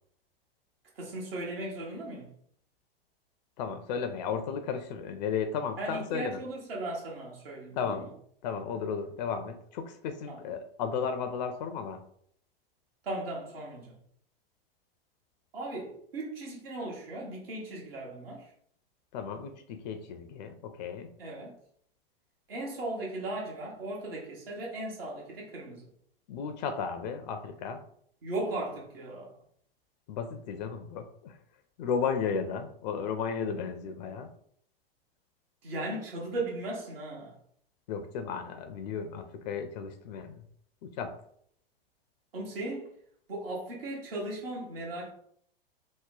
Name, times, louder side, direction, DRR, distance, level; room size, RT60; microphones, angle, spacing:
voice 1, 1.0-2.3 5.8-8.1 10.3-10.4 13.0-14.0 15.5-18.5 21.2-21.5 22.5-25.9 28.2-29.3 35.6-37.3 42.3-42.9 43.3-45.1, right 2 dB, 70° right, 1.2 m, -37 dB
voice 2, 3.6-6.4 7.8-8.0 8.4-12.0 19.1-21.1 26.3-27.8 30.1-31.4 31.8-34.3 37.9-40.3 40.8-41.1, left 6 dB, 45° left, 0.4 m, -34 dB
3.0 x 2.0 x 3.7 m
figure-of-eight pair, 95°, 30 cm